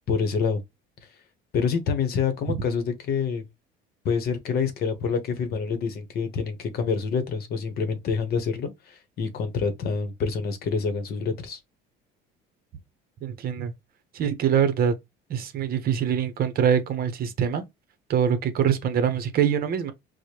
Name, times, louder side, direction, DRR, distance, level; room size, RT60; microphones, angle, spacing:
voice 1, 0.1-0.6 1.5-3.4 4.0-11.6, left 5 dB, 50° left, 0.9 m, -27 dB
voice 2, 13.2-13.7 14.1-15.0 15.3-17.6 18.1-19.9, right 8 dB, 45° right, 0.8 m, -24 dB
4.7 x 2.1 x 2.9 m
cardioid pair, 140°, 21 cm